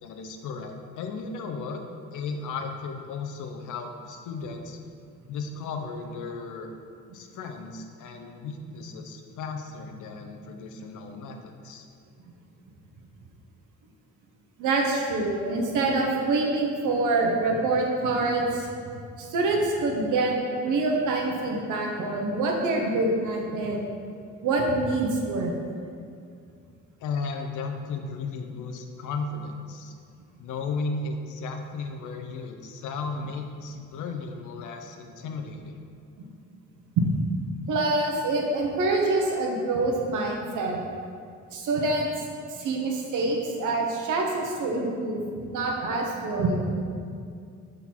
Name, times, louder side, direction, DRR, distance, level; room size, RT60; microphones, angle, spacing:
voice 1, 0.0-1.8 2.1-4.8 5.3-6.7 7.1-11.9 27.0-29.9 30.4-35.8, left 4 dB, 80° left, 5 dB, 0.7 m, -35 dB
voice 2, 14.6-18.7 19.2-23.8 24.4-25.5 37.7-40.8 41.5-42.3 42.6-46.7, right 2 dB, 85° right, 0 dB, 1.0 m, -26 dB
5.9 x 3.9 x 4.4 m, 2.3 s
cardioid pair, 90°, 30 cm